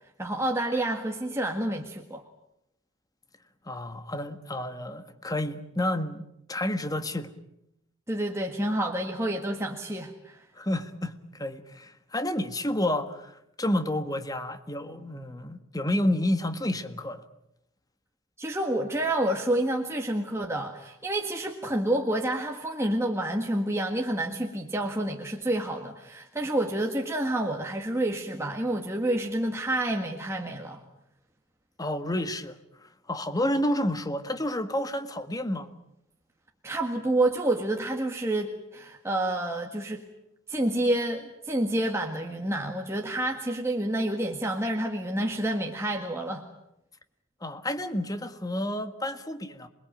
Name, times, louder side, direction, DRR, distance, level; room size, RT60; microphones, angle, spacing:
voice 1, 0.2-2.2 8.1-10.4 18.4-30.8 36.6-40.0 40.5-46.5, right 1 dB, 15° right, 1.8 m, -28 dB
voice 2, 3.6-7.3 10.6-17.2 31.8-32.6 32.8-35.7 47.4-49.7, left 1 dB, 15° left, 1.6 m, -30 dB
27.5 x 21.5 x 9.1 m
head